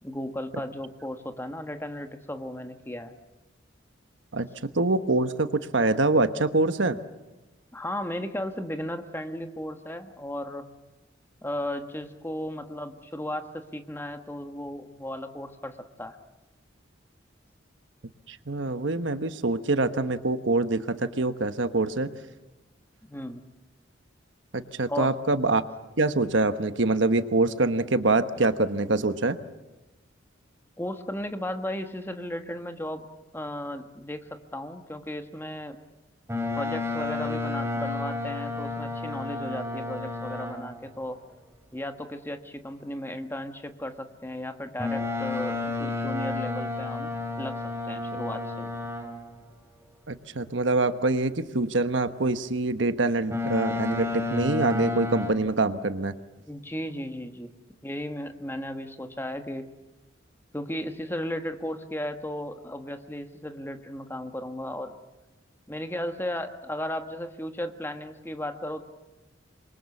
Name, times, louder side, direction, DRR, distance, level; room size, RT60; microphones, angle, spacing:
voice 1, 0.0-3.1 7.7-10.7 11.4-16.2 23.1-23.4 24.9-25.1 30.8-33.0 33.3-34.2 34.5-35.8 36.6-41.2 41.7-47.1 47.4-47.6 47.8-48.7 56.4-57.5 57.8-59.7 60.5-64.9 65.7-68.8, left 1 dB, 10° left, 7 dB, 1.5 m, -35 dB
voice 2, 4.7-7.0 18.3-22.1 24.5-25.6 26.0-29.4 50.1-56.1, right 2 dB, 70° right, 10 dB, 1.2 m, -25 dB
Boat Water vehicle, 36.3-40.8 44.8-49.3 53.3-55.3, left 3 dB, 15° right, 3.3 m, -31 dB
27.5 x 23.5 x 7.2 m, 1.1 s
head